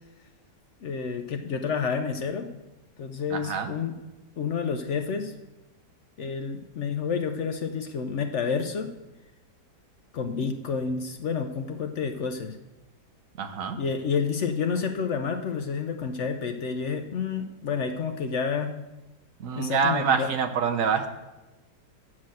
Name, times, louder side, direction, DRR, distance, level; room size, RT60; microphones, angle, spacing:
voice 1, 0.8-2.5 3.0-3.9 4.4-5.3 6.2-8.9 10.1-12.6 13.7-18.7 19.6-20.3, left 6 dB, 65° left, 6 dB, 0.7 m, -29 dB
voice 2, 3.3-3.7 13.4-13.8 19.4-21.1, right 6 dB, 60° right, 7 dB, 1.1 m, -26 dB
7.5 x 5.7 x 7.6 m, 1.1 s
omnidirectional pair, 1.8 m